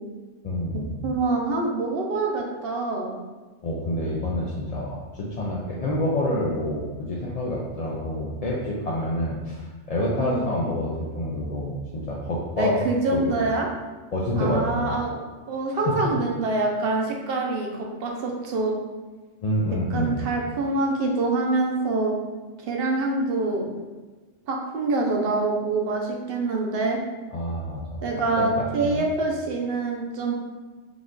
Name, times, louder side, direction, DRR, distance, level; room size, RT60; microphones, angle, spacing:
voice 1, 0.4-1.1 3.6-12.9 13.1-13.3 14.1-14.9 15.7-16.0 19.4-20.3 27.3-28.0 28.4-29.0, left 1 dB, 55° left, -4 dB, 0.4 m, -28 dB
voice 2, 1.0-3.1 10.2-10.5 12.6-13.7 14.3-15.2 15.5-18.8 19.9-22.1 22.7-23.6 24.5-27.0 28.0-30.3, right 3 dB, 55° right, 0 dB, 0.9 m, -25 dB
5.0 x 2.4 x 3.8 m, 1.3 s
omnidirectional pair, 1.3 m